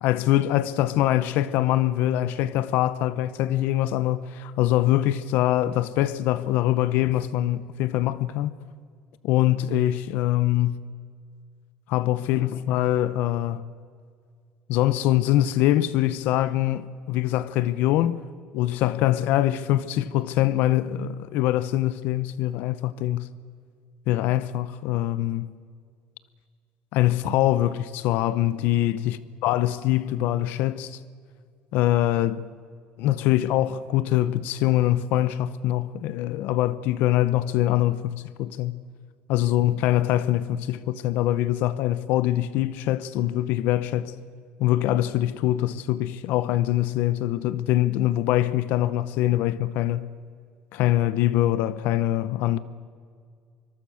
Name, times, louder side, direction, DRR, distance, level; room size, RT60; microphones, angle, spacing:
voice 1, 0.0-8.5 9.2-10.8 11.9-13.6 14.7-18.2 18.5-23.3 24.1-25.5 26.9-31.0 31.7-32.5 33.0-38.8 39.3-44.1 44.6-50.1 50.7-52.6, left 14 dB, 75° left, 0.8 m, -23 dB
24.5 x 22.5 x 6.4 m
cardioid pair, 150°, 3 cm